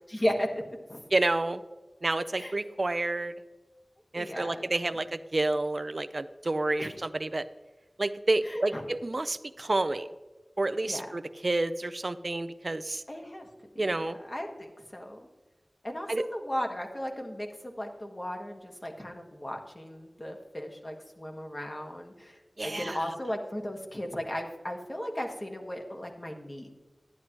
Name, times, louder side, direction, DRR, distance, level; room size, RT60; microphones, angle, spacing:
voice 1, 0.1-0.6 0.9-1.0 2.4-2.6 4.1-4.7 6.8-6.9 8.5-8.8 10.8-11.1 13.1-13.5 13.7-15.2 15.8-26.7, equal, 35° left, 2 dB, 1.5 m, -36 dB
voice 2, 1.1-1.6 2.0-3.4 4.1-7.5 8.0-10.1 10.6-13.0 13.8-14.2 16.1-16.3 22.6-23.0, right 2 dB, 55° right, 13 dB, 0.4 m, -29 dB
11.5 x 10.0 x 3.0 m, 1.2 s
wide cardioid pair, 55°, 0 cm